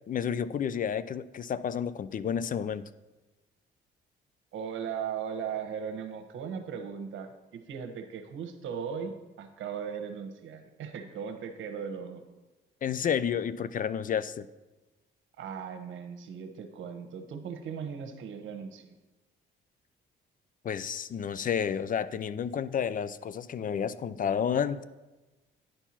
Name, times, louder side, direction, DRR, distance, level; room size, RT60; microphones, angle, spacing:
voice 1, 0.1-2.8 12.8-14.5 20.6-24.8, left 8 dB, 45° left, 16 dB, 0.4 m, -30 dB
voice 2, 4.5-12.2 15.4-18.9, right 7 dB, 75° right, 6 dB, 1.1 m, -38 dB
10.0 x 4.6 x 5.8 m, 1.1 s
cardioid pair, 90°, 20 cm